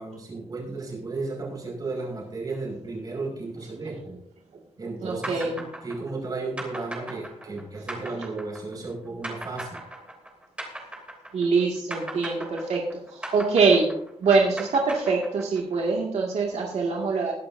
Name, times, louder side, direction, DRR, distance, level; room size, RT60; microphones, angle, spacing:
voice 1, 0.0-4.2 4.8-9.8, right 3 dB, 35° right, -1 dB, 5.4 m, -34 dB
voice 2, 5.0-5.7 11.3-13.9 14.2-17.3, right 4 dB, 80° right, -1 dB, 2.1 m, -24 dB
sound 1, 5.2-11.6 11.9-15.8, right 1 dB, 10° right, 3.0 m, -37 dB
20.5 x 11.0 x 2.7 m, 0.68 s
wide cardioid pair, 160°, 11 cm